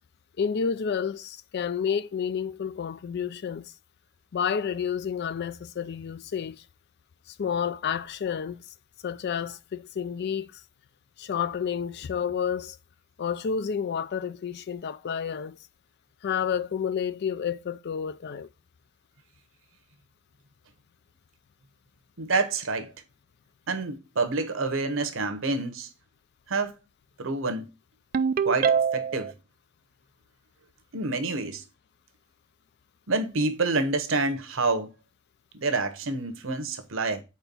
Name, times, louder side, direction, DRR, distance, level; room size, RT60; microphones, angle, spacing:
voice 1, 0.4-3.7 4.3-6.6 7.3-8.6 9.0-10.6 11.2-12.8 13.2-15.6 16.2-18.5, left 7 dB, 55° left, 0.4 m, -30 dB
voice 2, 22.2-22.9 23.7-25.9 26.5-26.7 27.2-27.7 28.4-29.3 30.9-31.6 33.1-34.9 35.5-37.2, right 3 dB, 70° right, 1.0 m, -28 dB
Ringtone, 28.1-29.3, right 6 dB, 45° right, 0.3 m, -24 dB
4.5 x 4.4 x 5.3 m
head